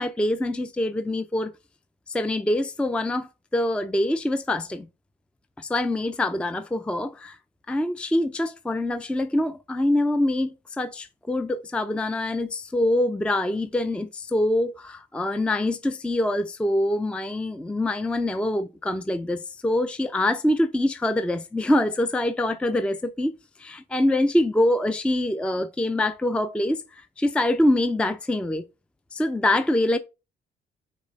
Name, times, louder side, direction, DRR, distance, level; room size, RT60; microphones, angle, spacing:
voice 1, 0.0-1.5 2.1-4.9 5.6-7.4 7.7-23.3 23.6-28.6 29.1-30.0, left 1 dB, 5° left, 0.4 m, -25 dB
5.3 x 4.0 x 5.1 m
cardioid pair, 90°, 20 cm